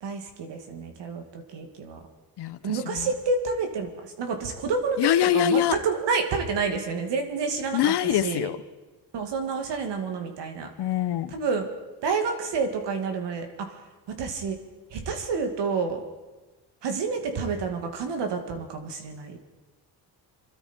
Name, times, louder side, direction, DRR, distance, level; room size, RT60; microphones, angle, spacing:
voice 1, 0.0-2.0 2.6-7.9 8.2-8.5 9.1-10.7 11.3-11.7 12.0-13.5 14.2-14.6 14.9-16.0 16.8-19.4, right 4 dB, 75° right, 5 dB, 2.5 m, -29 dB
voice 2, 2.4-3.1 5.0-5.8 7.7-8.6 10.8-11.3, left 11 dB, 65° left, 14 dB, 0.9 m, -24 dB
24.0 x 13.0 x 4.5 m, 1.2 s
cardioid pair, 95°, 42 cm